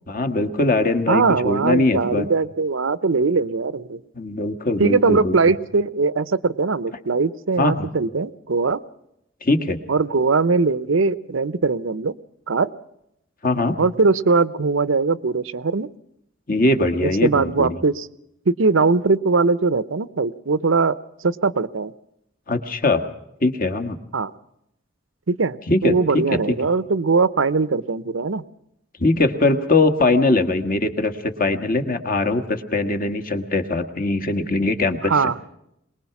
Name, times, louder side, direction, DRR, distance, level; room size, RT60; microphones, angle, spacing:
voice 1, 0.1-2.3 4.2-5.4 7.6-7.9 9.4-9.8 13.4-13.8 16.5-17.8 22.5-23.0 23.4-24.0 25.7-26.6 29.0-35.1, left 2 dB, 45° left, 6 dB, 1.6 m, -21 dB
voice 2, 1.1-4.0 4.8-8.8 9.9-12.1 12.5-12.7 13.8-15.9 17.2-18.1 18.5-21.0 21.2-21.9 24.1-24.3 25.3-28.4 35.0-35.4, right 4 dB, 80° right, 16 dB, 0.7 m, -20 dB
23.0 x 20.5 x 5.9 m, 0.79 s
head